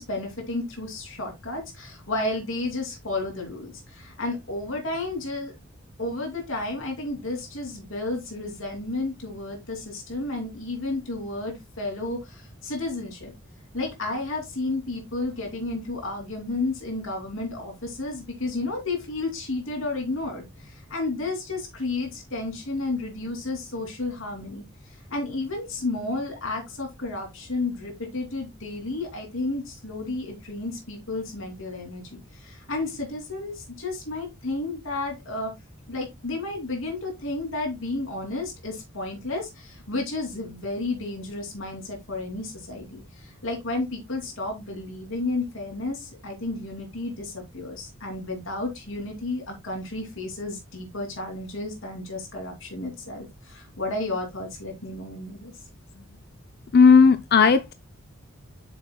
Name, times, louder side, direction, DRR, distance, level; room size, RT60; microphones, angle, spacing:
voice 1, 0.0-5.5 6.0-13.3 13.7-35.5 35.9-55.5, left 2 dB, 70° left, 2.8 m, -32 dB
voice 2, 56.7-57.7, left 5 dB, 50° left, 0.4 m, -15 dB
8.2 x 6.8 x 2.2 m
head